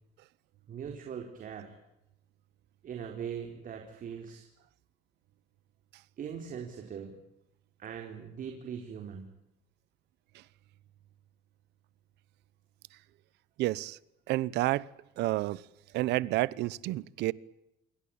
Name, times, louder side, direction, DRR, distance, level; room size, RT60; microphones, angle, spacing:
voice 1, 0.7-1.7 2.8-4.5 6.2-7.2 7.8-9.3, right 7 dB, 55° right, 4.2 m, -41 dB
voice 2, 13.6-14.0 14.3-14.9 15.2-15.6 15.9-17.3, right 17 dB, 85° right, 1.0 m, -30 dB
28.0 x 22.5 x 8.7 m
cardioid pair, 110°, 17 cm